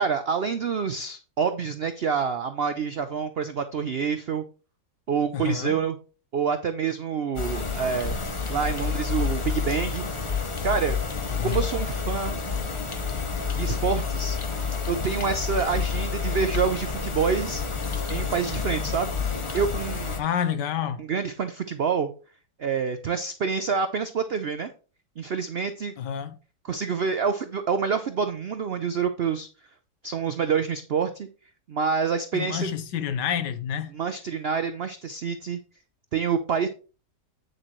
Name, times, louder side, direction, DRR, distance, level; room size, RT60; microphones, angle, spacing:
voice 1, 0.0-4.4 5.1-6.0 6.3-8.2 8.5-10.0 10.6-11.0 11.4-12.4 13.5-14.4 14.9-17.6 18.1-19.1 19.5-20.2 21.0-22.1 22.6-24.7 25.2-25.9 26.6-29.5 30.0-31.3 31.7-32.7 33.9-35.6 36.1-36.7, right 6 dB, 85° right, 0.5 m, -27 dB
voice 2, 5.3-5.8 11.3-11.7 20.2-21.0 26.0-26.4 32.3-33.9, left 8 dB, 80° left, 1.4 m, -29 dB
sound 1, 7.4-20.2, left 5 dB, 45° left, 0.4 m, -29 dB
8.8 x 6.7 x 3.1 m
omnidirectional pair, 1.9 m